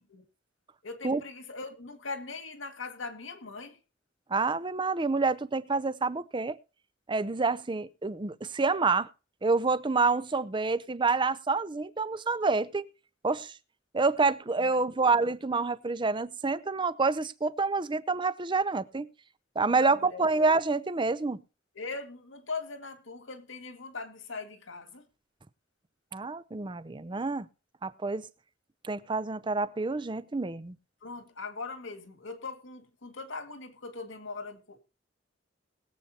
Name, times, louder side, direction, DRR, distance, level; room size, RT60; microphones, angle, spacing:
voice 1, 0.8-3.8 14.6-14.9 19.7-20.3 21.7-25.1 31.0-34.8, left 4 dB, 85° left, 2.0 m, -40 dB
voice 2, 4.3-6.6 7.1-9.1 9.4-12.9 13.2-13.6 13.9-19.1 19.6-21.4 26.1-27.5 27.8-28.3 28.8-30.8, right 4 dB, 25° right, 0.6 m, -28 dB
21.0 x 8.1 x 2.8 m
head